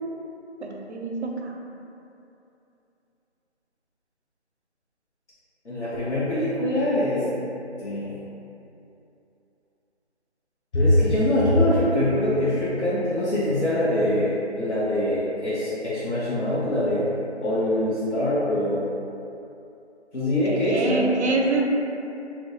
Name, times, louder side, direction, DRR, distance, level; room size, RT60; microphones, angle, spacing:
voice 1, 0.6-1.5 20.5-21.6, right 3 dB, 70° right, 0 dB, 0.5 m, -25 dB
voice 2, 5.6-7.2 7.8-8.2 10.7-17.0 17.4-18.8 20.1-21.1, left 1 dB, 70° left, -10 dB, 0.8 m, -23 dB
2.6 x 2.2 x 2.6 m, 2.8 s
figure-of-eight pair, 180°, 35 cm